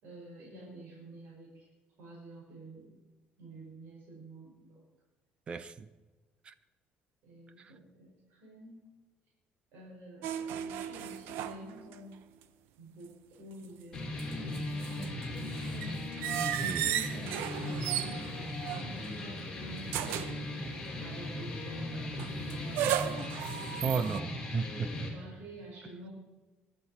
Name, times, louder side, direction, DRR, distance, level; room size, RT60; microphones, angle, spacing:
voice 1, 0.0-1.7 2.0-3.0 3.4-4.8 7.2-8.9 9.7-12.2 12.8-16.3 16.6-23.3 24.9-26.1, right 1 dB, 70° right, -4 dB, 5.6 m, -49 dB
voice 2, 5.5-5.9 6.5-6.6 7.6-7.7 15.0-15.1 16.6-16.9 23.8-24.9, right 5 dB, 30° right, 14 dB, 0.7 m, -34 dB
sound 1, 10.2-12.1 12.4-12.5 13.9-19.3 19.9-20.5 22.2-24.2, right 11 dB, 85° right, 0.8 m, -35 dB
sound 2, 13.9-25.1, left 1 dB, 15° left, 3.5 m, -38 dB
20.5 x 11.5 x 4.3 m, 1.3 s
cardioid pair, 170°, 4 cm